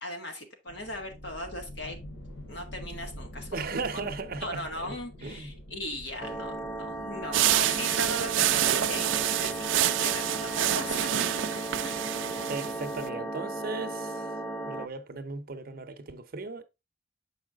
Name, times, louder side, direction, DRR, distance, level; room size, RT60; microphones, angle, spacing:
voice 1, 0.0-2.0 2.5-4.1 4.4-11.1 11.8-12.3, left 1 dB, 65° left, 1.8 m, -38 dB
sound 1, 0.7-12.1, equal, 85° left, 3.6 m, -47 dB
voice 2, 3.5-5.0 5.2-5.5 12.5-14.3 14.6-16.6, right 3 dB, 50° right, 0.8 m, -36 dB
sound 2, 6.2-14.9, right 1 dB, 5° left, 0.4 m, -36 dB
sound 3, 7.3-13.1, right 12 dB, 80° right, 0.4 m, -27 dB
7.1 x 4.8 x 3.5 m
head